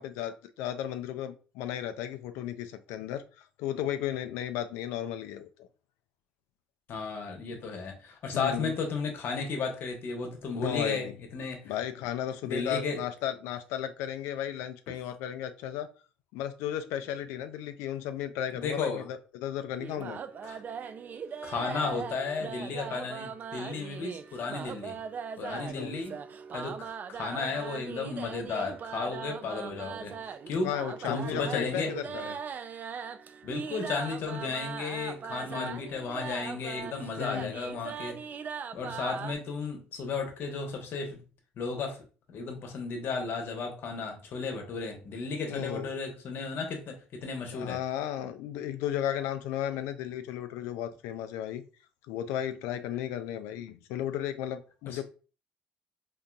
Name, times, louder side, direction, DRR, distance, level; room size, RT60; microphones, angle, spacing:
voice 1, 0.0-5.7 7.5-7.6 8.3-8.7 10.6-11.1 11.6-15.9 16.3-20.2 25.5-25.9 30.6-32.4 35.5-35.8 37.2-37.5 45.5-45.9 47.5-51.6 52.1-55.0, left 11 dB, 75° left, 0.4 m, -34 dB
voice 2, 6.9-11.7 12.4-13.0 18.5-19.0 20.4-20.6 21.4-25.0 25.4-26.2 26.5-30.7 31.1-31.9 33.4-38.2 38.7-41.2 41.6-42.0 42.3-47.8 54.9-55.0, left 4 dB, 55° left, 1.0 m, -34 dB
sound 1, 19.8-39.4, right 6 dB, 40° right, 0.3 m, -40 dB
3.8 x 2.6 x 2.2 m
hypercardioid pair, 65°, 4 cm